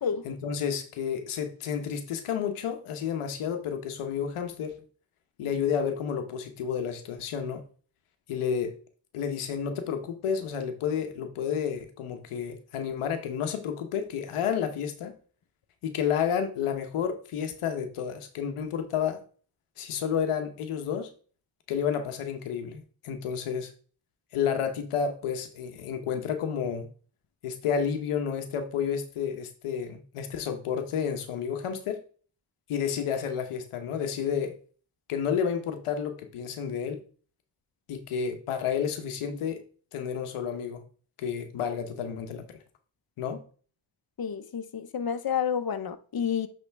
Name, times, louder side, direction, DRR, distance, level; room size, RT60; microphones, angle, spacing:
voice 1, 0.2-4.7 5.4-7.6 8.3-8.7 9.1-15.1 15.8-19.2 19.8-21.1 21.7-23.7 24.3-26.9 27.4-32.0 32.7-34.5 35.1-37.0 37.9-39.6 39.9-40.8 41.2-42.4 43.2-43.4, left 7 dB, 85° left, 1.1 m, -30 dB
voice 2, 44.2-46.5, left 7 dB, 45° left, 1.0 m, -30 dB
9.7 x 3.7 x 3.5 m
supercardioid pair, 45°, 49 cm